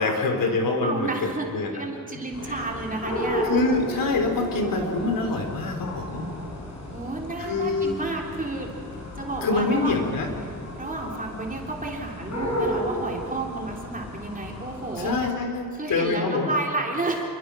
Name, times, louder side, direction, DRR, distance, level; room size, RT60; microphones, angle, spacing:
voice 1, 0.0-1.8 2.4-2.6 3.4-6.3 7.4-8.0 9.4-10.3 15.0-16.5, left 3 dB, 80° left, 4 dB, 3.9 m, -25 dB
voice 2, 0.8-3.4 6.9-8.7 9.2-10.0 10.8-15.1 15.7-17.2, right 2 dB, 25° right, 0 dB, 3.4 m, -31 dB
sound 1, 2.3-15.3, equal, 50° left, 5.8 m, -33 dB
27.5 x 23.5 x 6.3 m, 2.5 s
wide cardioid pair, 120°, 33 cm